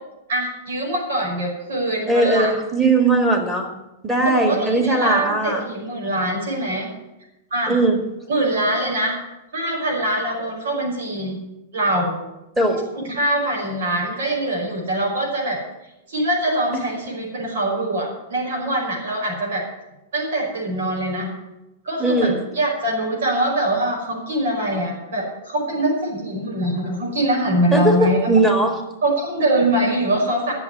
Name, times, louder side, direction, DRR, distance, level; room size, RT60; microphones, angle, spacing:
voice 1, 0.3-2.5 4.2-6.9 7.5-7.8 8.3-9.2 9.5-11.4 11.7-12.2 12.9-15.6 16.1-19.6 20.1-21.3 21.8-28.3 29.0-30.5, right 1 dB, 85° right, -3 dB, 5.6 m, -23 dB
voice 2, 2.1-3.7 4.0-5.6 7.7-8.0 12.6-12.8 22.0-22.4 27.7-28.8, right 2 dB, 10° right, 4 dB, 1.9 m, -19 dB
11.5 x 7.2 x 9.6 m, 0.94 s
supercardioid pair, 165°, 0 cm